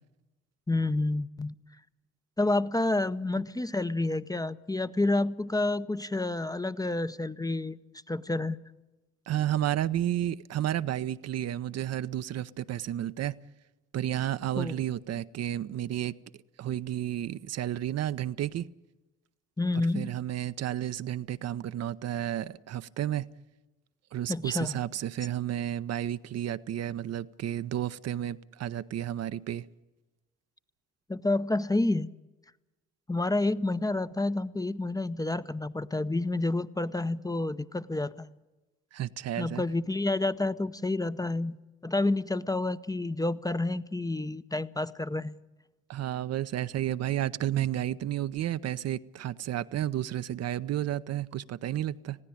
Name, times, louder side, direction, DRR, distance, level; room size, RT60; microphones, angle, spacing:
voice 1, 0.7-1.5 2.4-7.8 8.1-8.6 14.6-14.8 19.6-20.1 24.3-24.8 31.1-32.1 33.1-38.3 39.4-45.4, left 2 dB, 10° left, 0.7 m, -29 dB
voice 2, 9.3-13.4 13.9-16.2 16.6-18.7 19.7-23.3 24.1-29.6 38.9-39.6 45.9-52.2, right 12 dB, 45° right, 0.7 m, -32 dB
20.5 x 16.0 x 8.6 m
hypercardioid pair, 45°, 34 cm